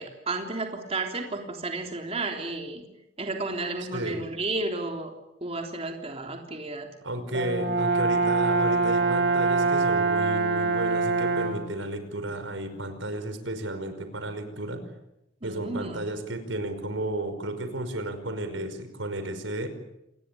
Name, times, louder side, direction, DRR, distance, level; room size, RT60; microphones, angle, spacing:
voice 1, 0.0-2.8 3.2-5.1 5.4-6.9 15.4-16.0, right 3 dB, 30° right, 3 dB, 3.5 m, -32 dB
voice 2, 3.9-4.2 7.0-14.8 15.4-19.7, right 1 dB, 85° right, 9 dB, 5.3 m, -33 dB
Brass instrument, 7.3-11.7, right 3 dB, 60° right, 4.2 m, -24 dB
28.0 x 21.5 x 9.8 m, 0.87 s
head